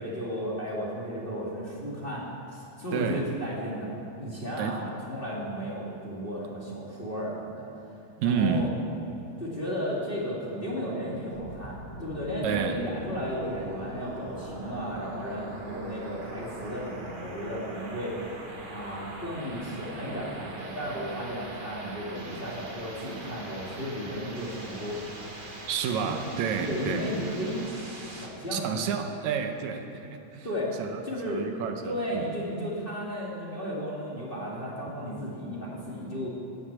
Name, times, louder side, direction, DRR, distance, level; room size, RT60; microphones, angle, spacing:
voice 1, 0.0-7.7 8.2-8.7 9.4-18.2 18.7-25.0 26.0-26.2 26.6-27.6 28.1-28.7 30.4-30.8 31.0-31.5 31.8-36.3, equal, 20° left, -6 dB, 1.9 m, -34 dB
voice 2, 2.9-3.3 4.6-4.8 8.2-8.8 12.4-12.8 25.7-27.1 28.5-30.5 30.8-32.3, right 6 dB, 80° right, 6 dB, 2.1 m, -30 dB
sound 1, 11.3-28.3, right 1 dB, 40° right, 0.7 m, -42 dB
13.5 x 8.3 x 8.6 m, 2.7 s
omnidirectional pair, 3.3 m